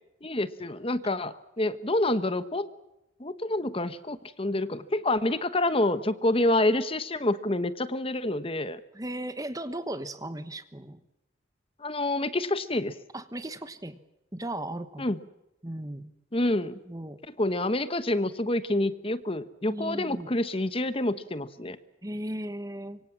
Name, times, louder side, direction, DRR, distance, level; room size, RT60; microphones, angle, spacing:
voice 1, 0.2-2.7 3.2-8.8 11.8-12.9 15.0-15.2 16.3-16.8 17.4-21.8, left 1 dB, 25° left, 13 dB, 1.0 m, -27 dB
voice 2, 8.9-11.0 13.1-14.0 14.3-15.2 15.6-16.1 16.9-17.2 19.7-20.3 22.0-23.0, right 1 dB, 15° right, 12 dB, 1.2 m, -36 dB
25.5 x 24.0 x 7.4 m, 0.92 s
head